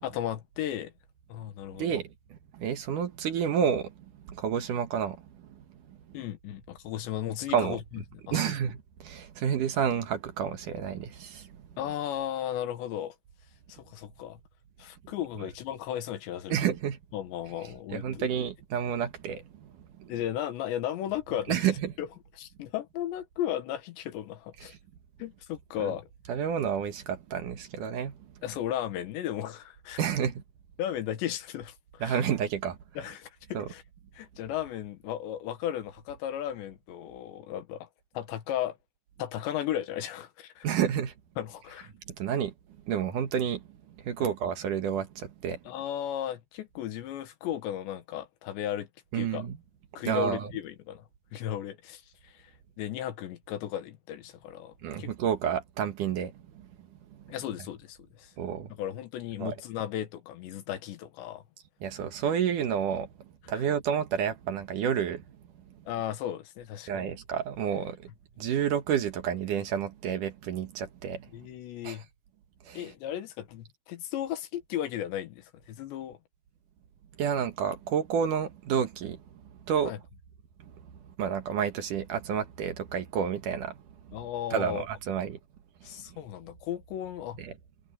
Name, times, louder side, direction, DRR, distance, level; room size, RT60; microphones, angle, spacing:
voice 1, 0.0-0.9 1.3-2.0 6.1-8.5 11.8-13.2 13.7-14.4 14.8-16.7 17.1-18.3 20.1-21.7 22.0-22.1 22.4-24.8 25.2-26.1 28.4-30.0 30.8-32.2 33.0-33.8 34.1-37.9 38.2-38.8 39.2-40.7 41.4-41.9 44.2-44.3 45.7-48.9 49.1-49.5 50.0-52.5 52.8-55.1 57.3-58.3 58.7-61.4 63.5-63.6 65.9-67.1 71.3-72.1 72.8-76.2 79.9-80.0 84.1-84.8 85.8-87.4, left 11 dB, 75° left, 3.7 m, -35 dB
voice 2, 1.7-2.1 2.5-3.9 4.3-5.6 7.5-7.8 8.3-11.5 16.5-17.0 17.9-19.7 20.0-20.1 21.5-21.9 25.8-25.9 26.3-28.1 30.0-30.4 32.0-32.8 33.5-33.7 40.6-41.1 42.1-42.5 42.9-43.6 44.0-45.6 49.1-49.6 50.1-50.5 54.8-56.4 57.1-57.3 58.4-58.7 59.4-59.5 61.8-63.1 63.5-65.2 66.9-68.0 68.4-71.3 71.8-72.0 72.7-72.9 77.2-79.2 79.7-79.9 80.6-80.7 81.2-83.8 84.5-85.4 87.4-87.5, right 8 dB, 60° right, 2.4 m, -30 dB
omnidirectional pair, 5.1 m